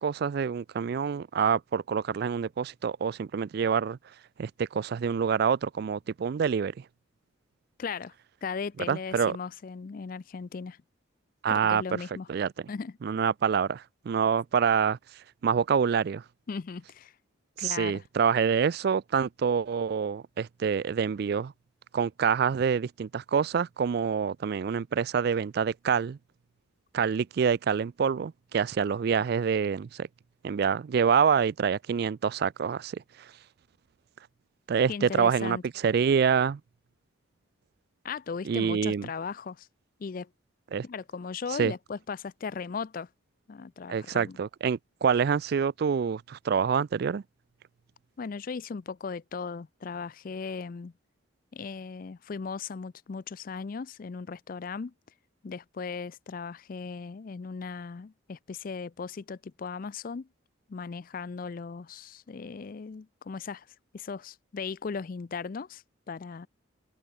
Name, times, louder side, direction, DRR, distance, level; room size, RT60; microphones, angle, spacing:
voice 1, 0.0-4.0 4.4-6.7 8.9-9.4 11.4-11.8 12.3-12.5 13.0-15.0 15.4-16.2 17.6-21.5 21.9-26.2 26.9-30.1 30.4-33.0 34.7-36.6 38.4-39.1 40.7-40.8 41.6-41.7 43.9-47.2, right 6 dB, 50° right, 0.3 m, -26 dB
voice 2, 7.8-8.1 8.4-10.8 11.5-12.3 12.7-13.0 16.5-17.1 17.6-18.0 34.9-35.6 38.0-39.7 40.0-40.3 40.8-43.1 43.5-44.4 48.2-50.9 51.5-54.9 55.4-60.3 60.7-63.7 63.9-66.5, left 5 dB, 45° left, 0.4 m, -37 dB
open air
head